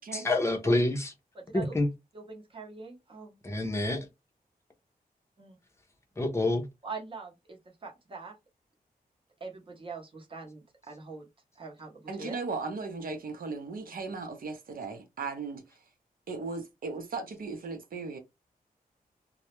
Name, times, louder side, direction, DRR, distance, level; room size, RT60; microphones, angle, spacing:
voice 1, 0.1-1.1 1.5-1.9 3.4-4.1 6.2-6.7, left 2 dB, 15° left, 0.5 m, -27 dB
voice 2, 1.3-1.7 2.1-3.4 5.4-5.6 6.8-8.4 9.4-11.3 11.6-12.4, right 4 dB, 35° right, 0.7 m, -43 dB
voice 3, 12.1-15.6 16.3-18.2, right 4 dB, 65° right, 0.6 m, -37 dB
2.2 x 2.0 x 2.9 m
wide cardioid pair, 180°, 16 cm